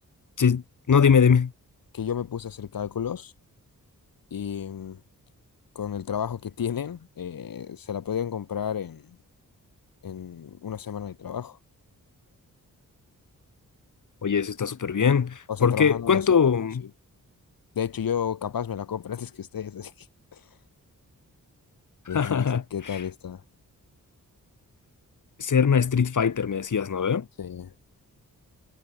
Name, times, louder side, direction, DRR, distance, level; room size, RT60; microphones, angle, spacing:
voice 1, 0.9-1.5 14.2-16.8 22.1-22.6 22.9-23.0 25.4-27.3, left 6 dB, 60° left, 2.1 m, -21 dB
voice 2, 1.9-3.3 4.3-5.0 5.7-9.2 10.0-11.6 15.5-16.9 17.7-20.1 20.3-20.4 22.1-23.4 27.4-27.7, left 8 dB, 75° left, 2.4 m, -32 dB
cardioid pair, 55°, 35 cm